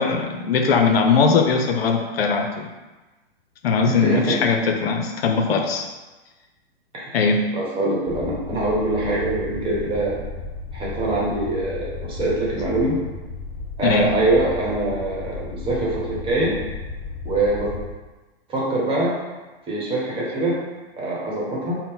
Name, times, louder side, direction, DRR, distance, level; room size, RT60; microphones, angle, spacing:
voice 1, 0.0-2.7 3.6-5.8 7.1-7.5 13.8-14.1, left 5 dB, 75° left, 3 dB, 0.6 m, -20 dB
voice 2, 3.9-4.4 6.9-7.2 7.5-10.2 10.7-13.0 13.8-16.6 17.2-17.7 18.5-19.1 19.7-20.6 21.0-21.8, right 2 dB, 15° right, -5 dB, 1.0 m, -23 dB
sound 1, 8.1-17.9, left 4 dB, 25° left, 0.5 m, -34 dB
4.2 x 2.1 x 3.7 m, 1.2 s
hypercardioid pair, 130°, 30 cm